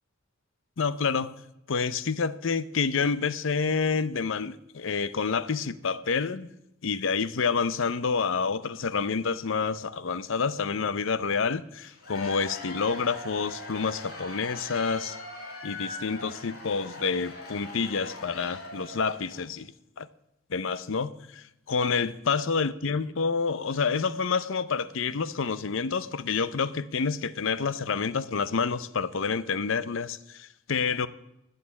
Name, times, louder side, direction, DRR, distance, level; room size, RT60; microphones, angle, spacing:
voice 1, 0.8-1.3 1.7-6.5 6.8-15.2 15.6-19.7 20.0-20.1 20.5-31.1, left 5 dB, 65° left, 0.6 m, -28 dB
Cheering / Applause / Crowd, 11.8-19.5, left 2 dB, 50° left, 4.0 m, -41 dB
20.0 x 6.7 x 8.3 m
head